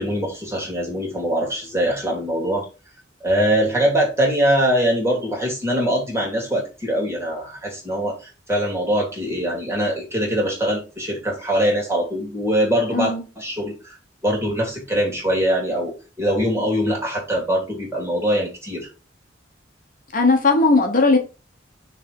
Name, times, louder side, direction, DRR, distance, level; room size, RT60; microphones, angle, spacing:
voice 1, 0.0-2.6 3.2-13.9 14.2-18.9, equal, 15° right, -1 dB, 2.6 m, -22 dB
voice 2, 12.9-13.2 20.1-21.2, left 3 dB, 45° left, 3 dB, 1.1 m, -17 dB
6.3 x 3.4 x 5.3 m, 0.31 s
head